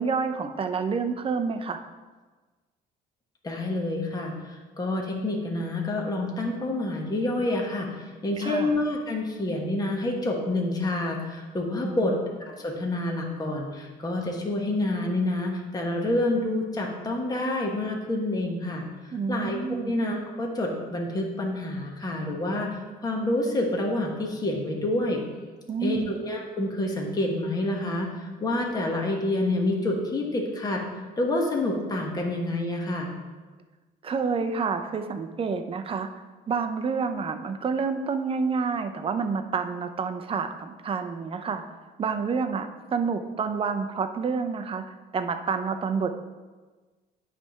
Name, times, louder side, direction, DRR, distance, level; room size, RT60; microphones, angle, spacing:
voice 1, 0.0-1.8 8.4-8.7 11.8-12.2 19.1-20.0 25.7-26.1 34.0-36.1 36.5-41.6 42.0-44.8 45.1-46.1, right 5 dB, 35° right, 7 dB, 0.6 m, -28 dB
voice 2, 3.4-12.1 12.5-18.8 19.3-25.2 25.8-30.8 31.2-33.1, left 1 dB, 20° left, 0 dB, 1.3 m, -28 dB
9.0 x 3.4 x 5.7 m, 1.3 s
cardioid pair, 110°, 17 cm